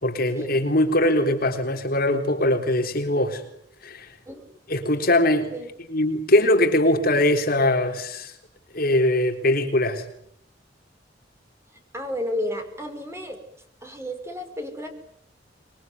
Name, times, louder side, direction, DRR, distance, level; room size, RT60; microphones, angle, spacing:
voice 1, 0.0-3.4 3.8-4.1 4.7-5.5 5.9-8.3 8.7-10.0, left 1 dB, 50° left, 5 dB, 3.7 m, -21 dB
voice 2, 11.9-13.4 13.8-14.9, left 1 dB, 15° right, 6 dB, 5.3 m, -32 dB
26.5 x 23.0 x 9.5 m, 0.71 s
head